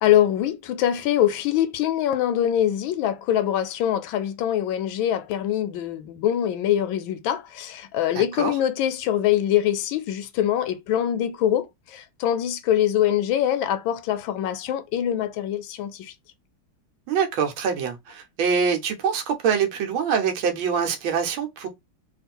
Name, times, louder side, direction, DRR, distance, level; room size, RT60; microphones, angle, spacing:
voice 1, 0.0-16.1, left 11 dB, 80° left, 1.3 m, -23 dB
voice 2, 8.1-8.5 17.1-21.7, right 6 dB, 85° right, 1.6 m, -24 dB
3.6 x 2.4 x 4.2 m
omnidirectional pair, 2.1 m